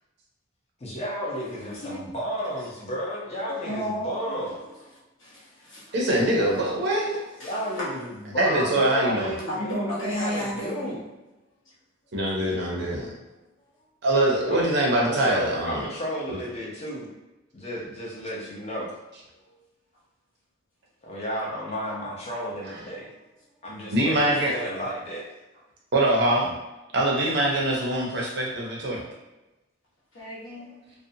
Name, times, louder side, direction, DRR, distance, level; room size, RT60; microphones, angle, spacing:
voice 1, 0.8-4.6 7.4-11.0 14.5-14.7 15.0-17.1 17.5-18.9 21.0-23.1 23.6-25.3, equal, 30° left, 0.6 m, -33 dB
voice 2, 1.3-2.0 3.5-4.2 5.2-5.9 6.5-8.0 9.0-9.2 9.5-11.0 19.4-19.6 30.1-30.8, equal, 65° left, 0.9 m, -34 dB
voice 3, 5.9-7.2 8.4-9.3 12.1-13.0 14.0-15.9 16.3-16.4 23.9-24.5 25.9-26.5 26.9-29.0, right 1 dB, 55° right, 0.6 m, -23 dB
2.5 x 2.1 x 2.6 m
head